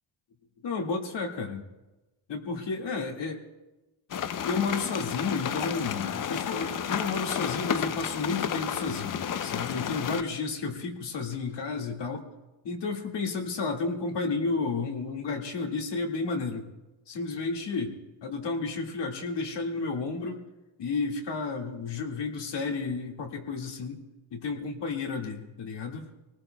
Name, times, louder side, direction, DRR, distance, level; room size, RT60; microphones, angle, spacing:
voice 1, 0.6-1.6 2.3-3.4 4.5-12.3 12.6-16.7 17.1-18.0 18.2-20.4 20.8-24.0 24.3-26.1, left 4 dB, 60° left, 1 dB, 2.0 m, -32 dB
sound 1, 4.1-10.2, left 8 dB, 45° left, 0.6 m, -32 dB
25.5 x 19.0 x 2.2 m, 1.1 s
cardioid pair, 115°, 47 cm